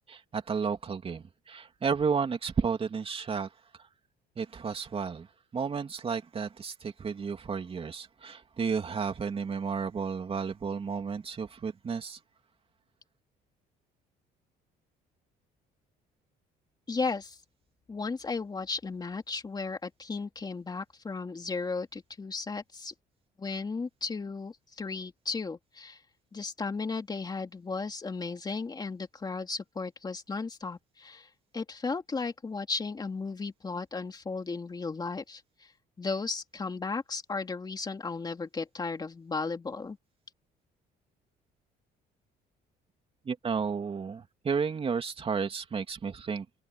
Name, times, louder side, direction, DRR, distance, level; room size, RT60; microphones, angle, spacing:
voice 1, 0.1-3.5 3.8-3.9 4.4-5.3 5.5-12.2 43.2-46.4, right 5 dB, 35° right, 3.0 m, -32 dB
voice 2, 16.9-17.4 17.9-22.9 23.4-26.0 26.3-35.7 36.0-40.0, left 4 dB, 25° left, 2.6 m, -35 dB
cardioid pair, 110°, 17 cm